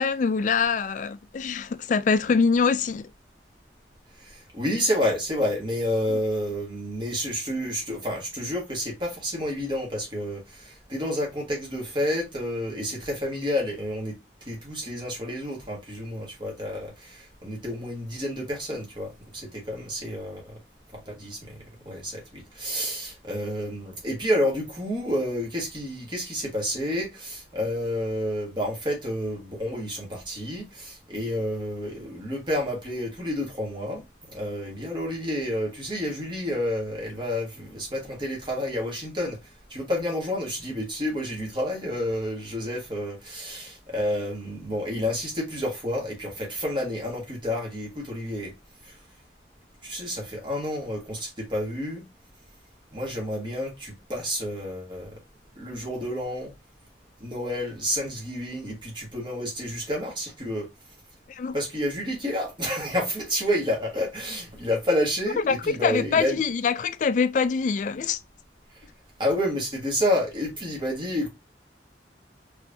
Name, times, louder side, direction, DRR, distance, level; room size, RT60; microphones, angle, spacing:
voice 1, 0.0-3.1 61.3-61.5 65.5-68.2, left 5 dB, 45° left, 0.3 m, -24 dB
voice 2, 4.2-14.1 14.5-20.5 20.9-34.0 34.3-39.4 39.7-48.5 48.8-48.9 49.8-52.0 52.9-55.2 55.6-56.5 57.2-60.7 61.5-66.4 69.2-71.3, left 1 dB, 25° right, 1.6 m, -29 dB
4.4 x 3.2 x 2.6 m
head